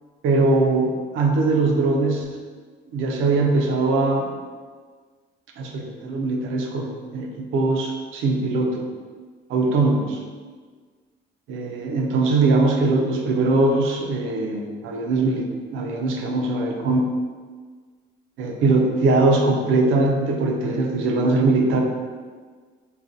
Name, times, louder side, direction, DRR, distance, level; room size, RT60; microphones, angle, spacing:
voice 1, 0.2-0.9 1.1-2.3 2.9-4.3 5.6-8.9 9.5-10.2 11.5-17.1 18.4-21.8, right 3 dB, 90° right, 2 dB, 0.5 m, -21 dB
3.9 x 2.2 x 2.5 m, 1.5 s
cardioid pair, 90°, 20 cm